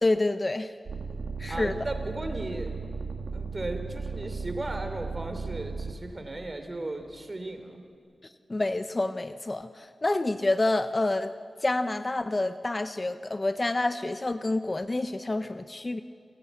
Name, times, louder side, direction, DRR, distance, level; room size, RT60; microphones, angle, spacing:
voice 1, 0.0-0.7 1.4-1.8 8.5-11.3 11.6-16.0, left 2 dB, 30° left, 10 dB, 0.8 m, -28 dB
sound 1, 0.9-5.9 6.6-7.3, right 4 dB, 75° right, 2.0 m, -36 dB
voice 2, 1.5-2.8 3.3-7.8, right 2 dB, 35° right, 7 dB, 3.1 m, -36 dB
27.5 x 15.5 x 8.3 m, 2.1 s
cardioid pair, 65°, 0 cm